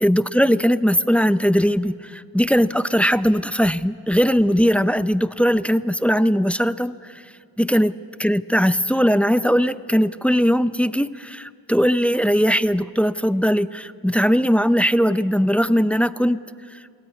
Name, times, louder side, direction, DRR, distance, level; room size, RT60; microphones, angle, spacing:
voice 1, 0.0-7.2 7.6-7.9 8.2-16.4 16.7-16.8, equal, 5° left, 14 dB, 0.5 m, -19 dB
22.5 x 17.5 x 9.4 m, 2.2 s
cardioid pair, 75°, 47 cm